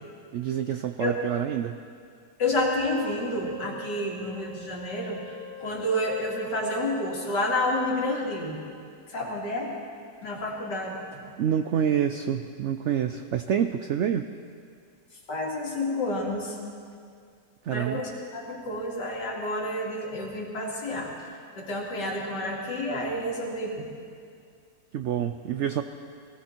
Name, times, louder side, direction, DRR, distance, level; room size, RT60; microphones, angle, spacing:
voice 1, 0.3-1.8 11.4-14.3 17.6-18.0 24.9-25.8, right 9 dB, 85° right, 9 dB, 0.6 m, -27 dB
voice 2, 2.4-8.6 9.1-9.7 10.2-11.0 15.3-16.6 17.7-21.1 21.6-23.9, left 1 dB, 85° left, -2 dB, 2.9 m, -29 dB
Wind instrument woodwind instrument, 2.9-7.5, left 1 dB, 60° right, 5.8 m, -44 dB
19.5 x 16.0 x 4.5 m, 2.2 s
omnidirectional pair, 1.8 m